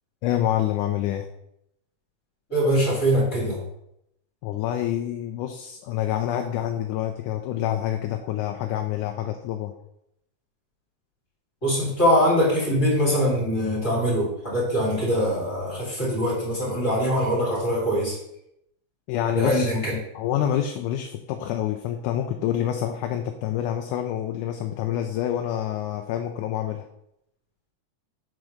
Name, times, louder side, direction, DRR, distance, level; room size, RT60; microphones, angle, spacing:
voice 1, 0.2-1.3 4.4-9.7 19.1-19.7 20.2-26.9, left 11 dB, 80° left, 5 dB, 2.0 m, -27 dB
voice 2, 2.5-3.6 11.6-18.2 19.3-20.0, equal, 25° left, -5 dB, 2.9 m, -23 dB
6.2 x 4.6 x 6.4 m, 0.78 s
omnidirectional pair, 3.8 m